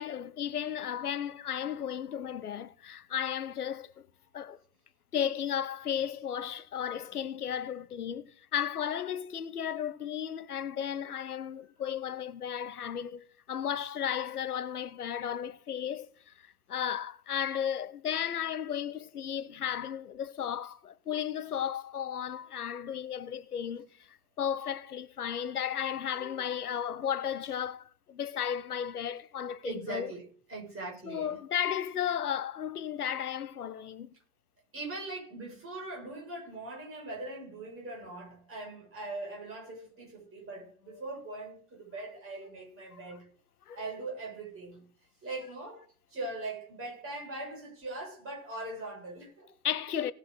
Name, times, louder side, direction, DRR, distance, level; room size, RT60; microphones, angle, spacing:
voice 1, 0.0-4.1 4.3-4.6 5.1-30.1 31.0-34.1 43.7-43.8 49.6-50.1, left 9 dB, 80° left, 0.7 m, -34 dB
voice 2, 29.6-31.4 34.7-43.3 43.7-44.9 45.2-49.5, right 2 dB, 30° right, 6.5 m, -41 dB
18.0 x 6.6 x 4.0 m
figure-of-eight pair, 65°, 44 cm